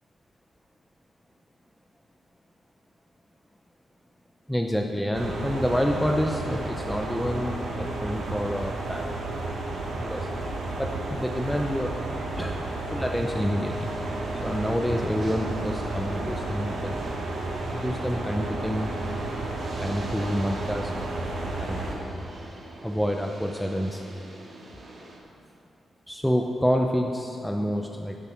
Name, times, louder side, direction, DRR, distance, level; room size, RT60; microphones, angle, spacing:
voice 1, 4.5-9.1 10.0-10.3 10.8-12.0 12.4-12.7 12.9-13.9 14.3-16.9 17.7-18.9 19.8-20.9 21.6-22.2 22.8-24.1 26.1-28.2, equal, ahead, 2 dB, 0.6 m, -28 dB
sound 1, 5.1-22.0, right 2 dB, 70° right, 2.3 m, -32 dB
sound 2, 13.7-25.2, right 1 dB, 35° right, 1.8 m, -43 dB
17.5 x 7.4 x 5.8 m, 2.8 s
wide cardioid pair, 145°, 0 cm